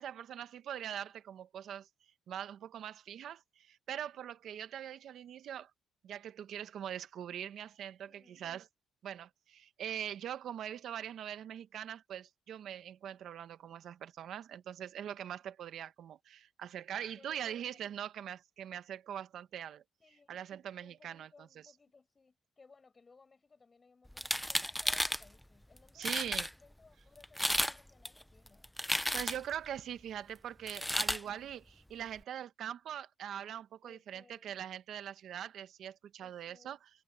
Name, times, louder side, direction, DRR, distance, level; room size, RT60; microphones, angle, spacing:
voice 1, 0.0-1.9 2.3-5.7 6.0-8.7 9.0-19.8 20.3-21.5 25.9-26.5 29.1-31.6 31.9-36.9, right 10 dB, 70° right, 1.3 m, -42 dB
voice 2, 8.0-8.4 17.2-17.8 20.0-28.7 31.0-31.5 33.8-34.5 36.2-36.7, left 4 dB, 30° left, 7.9 m, -63 dB
sound 1, 24.1-25.2 25.8-25.9 26.0-26.5 27.2-27.8 28.0-29.5 30.7-31.2, equal, 5° left, 0.8 m, -33 dB
cardioid pair, 90°, 0 cm